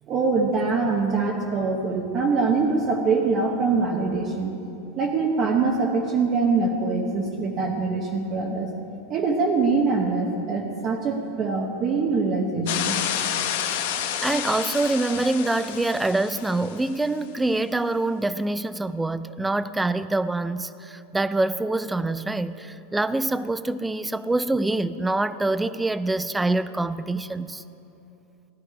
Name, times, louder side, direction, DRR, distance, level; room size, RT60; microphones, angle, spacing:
voice 1, 0.1-4.5 5.0-8.7 9.1-13.0, right 4 dB, 30° right, 1.1 m, -23 dB
sound 1, 12.7-16.9, left 9 dB, 70° left, 1.2 m, -29 dB
voice 2, 14.2-27.6, right 2 dB, 5° right, 0.3 m, -25 dB
16.5 x 11.5 x 5.0 m
supercardioid pair, 155°, 0 cm